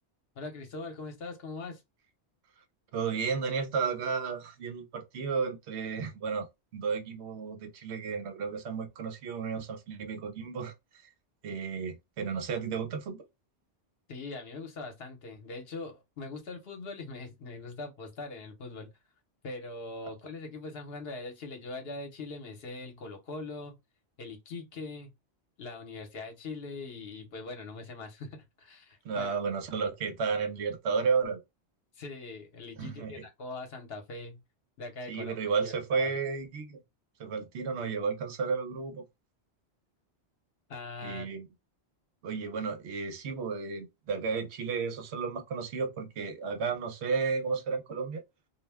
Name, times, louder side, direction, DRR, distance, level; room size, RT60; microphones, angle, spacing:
voice 1, 0.4-1.8 14.1-18.9 19.4-23.8 24.2-25.1 25.6-29.3 31.9-34.4 34.8-35.4 35.6-36.1 40.7-41.3, left 3 dB, 65° left, 1.0 m, -41 dB
voice 2, 2.9-6.5 6.7-10.7 11.4-13.2 29.0-31.4 32.8-33.3 35.1-36.8 37.2-39.0 41.0-41.5 42.2-48.2, right 5 dB, 80° right, 0.9 m, -33 dB
2.4 x 2.1 x 3.3 m
omnidirectional pair, 1.1 m